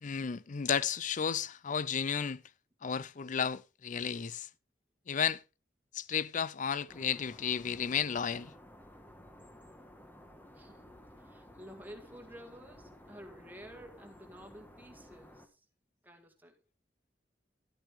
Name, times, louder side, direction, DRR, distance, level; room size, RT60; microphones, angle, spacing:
voice 1, 0.0-2.4 2.8-4.5 5.1-5.4 5.9-8.5, left 7 dB, 45° left, 0.5 m, -33 dB
sound 1, 6.9-15.5, left 1 dB, 10° left, 1.2 m, -55 dB
voice 2, 10.5-10.9 11.2-15.7 16.0-16.6, equal, 10° right, 2.0 m, -52 dB
13.0 x 9.0 x 3.3 m
head